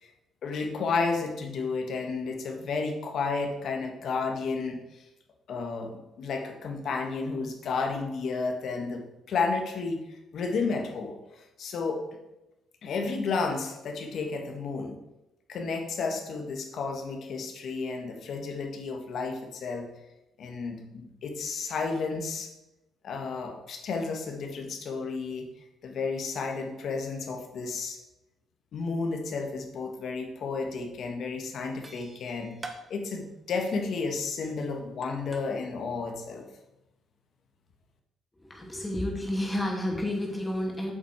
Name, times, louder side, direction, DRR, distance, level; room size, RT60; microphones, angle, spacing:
voice 1, 0.4-5.0 5.5-12.0 12.8-15.0 15.5-19.9 20.4-22.5 23.0-25.5 25.8-28.0 28.7-32.6 32.9-36.4, left 4 dB, 65° left, 4 dB, 1.5 m, -32 dB
sound 1, 30.8-30.9 31.1-31.5 31.8-35.5, right 2 dB, 25° right, 1.2 m, -46 dB
voice 2, 38.5-40.9, left 1 dB, 15° left, 0 dB, 2.3 m, -30 dB
8.2 x 6.9 x 4.7 m, 0.94 s
cardioid pair, 90°, 0 cm